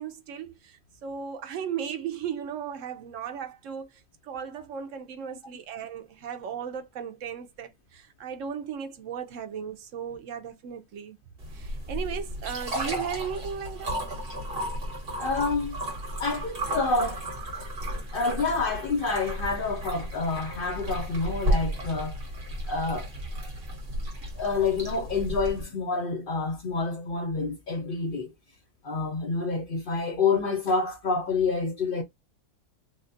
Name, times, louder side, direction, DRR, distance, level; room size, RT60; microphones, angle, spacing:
voice 1, 0.0-11.2 11.5-14.0, right 8 dB, 65° right, 0.8 m, -36 dB
sound 1, 11.4-25.6, right 1 dB, 40° right, 1.3 m, -33 dB
voice 2, 15.2-15.8 16.2-17.3 18.1-22.2 22.7-23.1 24.4-28.3 28.8-32.0, left 4 dB, 65° left, 0.5 m, -28 dB
3.5 x 2.3 x 2.6 m
omnidirectional pair, 1.7 m